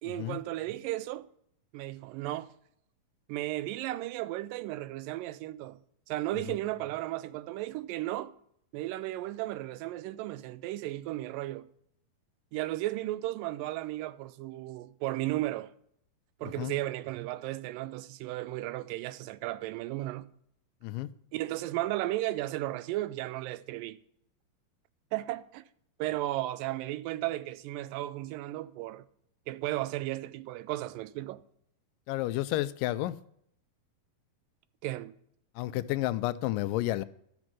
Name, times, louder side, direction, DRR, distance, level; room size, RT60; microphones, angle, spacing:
voice 1, 0.0-1.3 1.7-2.5 3.3-5.8 6.1-8.3 8.7-11.7 12.5-15.7 16.4-20.3 21.3-24.0 25.1-25.6 26.0-29.0 29.5-31.4 34.8-35.1, right 16 dB, 85° right, 2.2 m, -34 dB
voice 2, 32.1-33.2 35.6-37.0, left 16 dB, 80° left, 2.1 m, -31 dB
12.5 x 6.3 x 6.0 m
omnidirectional pair, 4.0 m